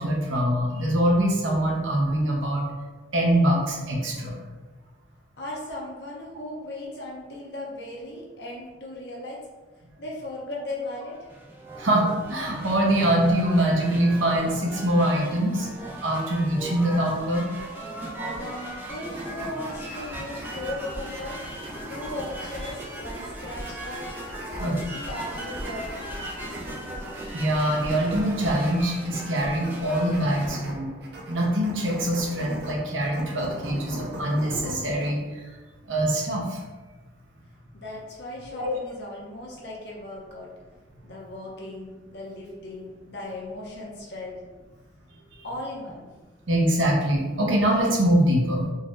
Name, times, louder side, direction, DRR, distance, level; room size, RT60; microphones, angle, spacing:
voice 1, 0.0-2.7 3.1-4.4 11.8-15.7 16.0-17.5 24.6-24.8 27.3-30.9 31.3-35.5 35.9-36.6 38.6-38.8 46.5-48.6, right 1 dB, 85° right, -2 dB, 0.9 m, -23 dB
voice 2, 5.4-9.4 10.0-11.3 18.2-21.4 21.9-24.1 24.5-26.9 37.7-40.5 41.0-44.4 45.4-46.1, left 1 dB, 60° left, -4 dB, 0.7 m, -37 dB
sound 1, 11.1-30.5, right 1 dB, 10° right, 0.5 m, -38 dB
sound 2, 19.1-35.1, equal, 60° right, 0.6 m, -41 dB
4.0 x 3.1 x 2.5 m, 1.3 s
head